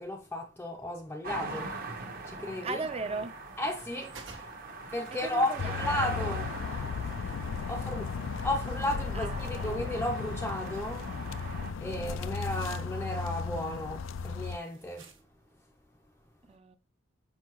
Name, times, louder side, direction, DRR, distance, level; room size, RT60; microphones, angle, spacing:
voice 1, 0.0-2.0 2.3-2.8 3.6-4.2 4.9-6.5 7.7-8.1 8.4-11.1 11.8-15.1, left 1 dB, 10° left, 0.5 m, -34 dB
sound 1, 1.2-11.7, right 3 dB, 50° right, 1.1 m, -41 dB
sound 2, 1.5-15.2, right 4 dB, 75° right, 1.4 m, -57 dB
voice 2, 2.6-3.4 5.1-5.9 7.6-7.7 9.1-9.7 16.5-16.8, right 3 dB, 30° right, 0.6 m, -38 dB
sound 3, 5.6-14.6, left 5 dB, 90° left, 0.4 m, -36 dB
6.5 x 5.0 x 3.0 m
head